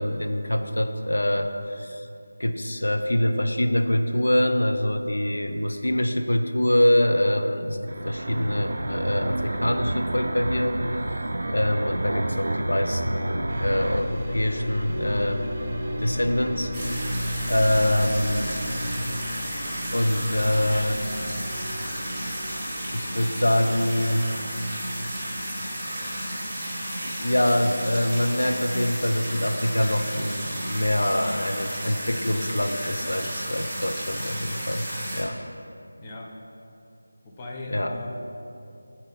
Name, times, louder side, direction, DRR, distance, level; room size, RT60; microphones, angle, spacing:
voice 1, 0.0-2.1 2.4-7.8 8.0-10.8 11.5-15.6 16.0-16.7 17.0-17.2 17.5-18.5 19.9-21.0 22.9-24.3 27.0-34.9 35.1-35.4 37.7-37.9, left 1 dB, 85° left, 6 dB, 0.5 m, -24 dB
sound 1, 7.9-14.0, right 1 dB, 65° right, 0.4 m, -29 dB
sound 2, 13.5-29.3 29.5-30.3, equal, 25° right, 0.8 m, -35 dB
sound 3, 16.7-35.2, equal, 5° right, 1.1 m, -33 dB
voice 2, 37.2-38.3, left 1 dB, 20° left, -1 dB, 0.6 m, -37 dB
7.0 x 4.2 x 3.8 m, 2.6 s
figure-of-eight pair, 170°, 0 cm